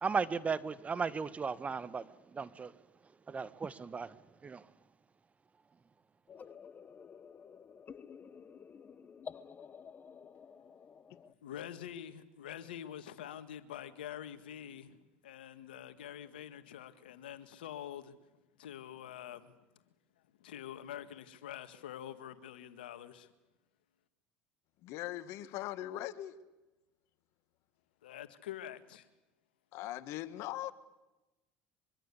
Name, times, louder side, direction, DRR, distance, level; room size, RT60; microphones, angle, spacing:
voice 1, 0.0-2.7 3.3-4.7, right 5 dB, 25° right, 1.4 m, -36 dB
sound 1, 6.3-11.3, left 6 dB, 35° left, 1.2 m, -51 dB
voice 2, 11.4-18.1 18.6-19.5 20.4-23.3 28.0-29.1, left 10 dB, 90° left, 1.7 m, -46 dB
voice 3, 24.8-26.3 29.7-30.7, left 14 dB, 65° left, 1.7 m, -40 dB
24.0 x 24.0 x 8.4 m
hypercardioid pair, 80°, 5 cm